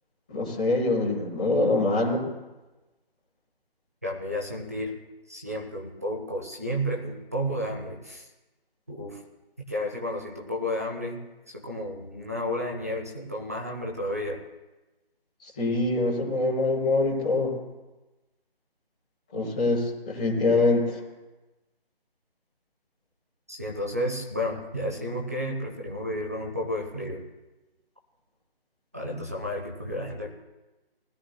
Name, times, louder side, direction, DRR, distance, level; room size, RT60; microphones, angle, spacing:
voice 1, 0.3-2.2 15.6-17.5 19.3-21.0, left 2 dB, 5° left, -9 dB, 1.1 m, -24 dB
voice 2, 4.0-4.9 5.3-8.3 8.9-9.2 9.6-11.2 11.5-14.4 23.5-27.2 28.9-30.3, equal, 15° right, -1 dB, 0.8 m, -32 dB
20.0 x 12.5 x 2.2 m, 1.1 s
figure-of-eight pair, 175°, 30 cm